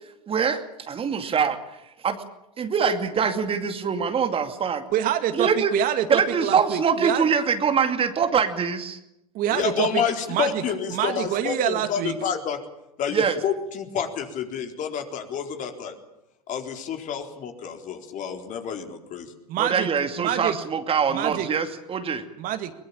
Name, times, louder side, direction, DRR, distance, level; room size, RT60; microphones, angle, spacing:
voice 1, 0.3-1.6 2.0-2.2 2.6-4.8 5.3-5.7 6.1-9.0 13.1-13.4 19.6-22.3, right 6 dB, 30° right, 8 dB, 2.4 m, -24 dB
voice 2, 4.9-7.3 9.3-10.0 10.3-10.6 10.9-12.2 19.5-19.9 20.2-20.6 21.1-21.5 22.4-22.7, right 11 dB, 45° right, 8 dB, 2.3 m, -26 dB
voice 3, 9.5-12.6 13.0-15.9 16.5-19.3, left 7 dB, 40° left, 4 dB, 4.1 m, -29 dB
22.5 x 21.5 x 8.8 m, 0.87 s
hypercardioid pair, 85°, 19 cm